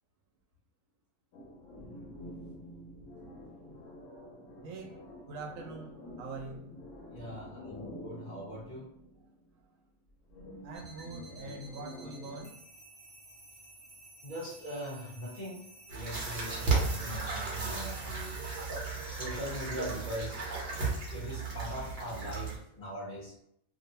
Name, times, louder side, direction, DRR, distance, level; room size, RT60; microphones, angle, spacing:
sound 1, 1.3-9.5 10.3-12.5, left 1 dB, 85° left, 1.1 m, -48 dB
voice 1, 4.6-5.0 5.3-6.7 10.6-12.6, right 3 dB, 85° right, 2 dB, 1.0 m, -43 dB
voice 2, 7.0-8.9 14.2-15.6 15.9-18.7 19.1-23.4, equal, 40° left, -7 dB, 1.1 m, -41 dB
sound 2, 10.7-22.8, right 2 dB, 10° left, 0.7 m, -55 dB
sound 3, 15.9-22.6, right 4 dB, 55° right, 0.9 m, -34 dB
2.7 x 2.1 x 2.7 m, 0.72 s
omnidirectional pair, 1.3 m